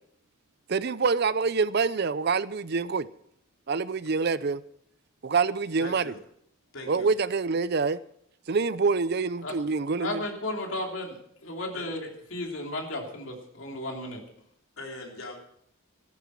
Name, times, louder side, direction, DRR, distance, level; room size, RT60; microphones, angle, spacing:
voice 1, 0.7-3.1 3.7-4.6 5.2-6.1 6.9-8.0 8.5-10.2, right 4 dB, 50° right, 0.5 m, -26 dB
voice 2, 5.8-6.2 6.7-7.1 11.7-11.9 14.8-15.4, left 2 dB, 80° left, 3.8 m, -40 dB
voice 3, 10.0-11.1 11.4-14.2, left 1 dB, 65° left, 3.0 m, -34 dB
14.5 x 11.0 x 5.8 m
head